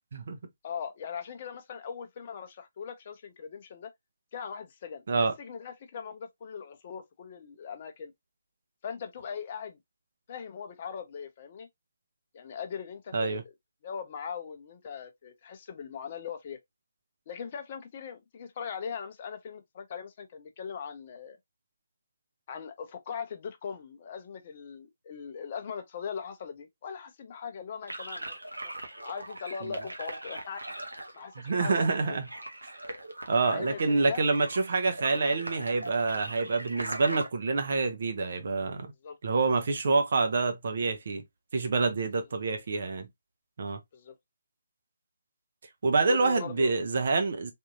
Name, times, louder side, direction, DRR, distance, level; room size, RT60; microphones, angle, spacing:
voice 1, 0.6-3.9 4.3-5.0 5.4-8.1 8.8-9.8 10.3-11.7 12.3-13.4 13.8-16.6 17.3-21.4 22.5-28.7 29.0-30.6 31.1-32.2 33.4-34.2 39.0-39.2 43.9-44.1 46.1-46.7, left 7 dB, 35° left, 0.6 m, -40 dB
sound 1, 27.9-37.3, right 1 dB, 80° right, 0.9 m, -40 dB
voice 2, 31.4-32.3 33.3-38.9 39.2-41.2 41.5-43.1 43.6-43.8 45.8-47.5, right 3 dB, 50° right, 0.7 m, -27 dB
3.5 x 2.7 x 2.6 m
figure-of-eight pair, 145°, 0 cm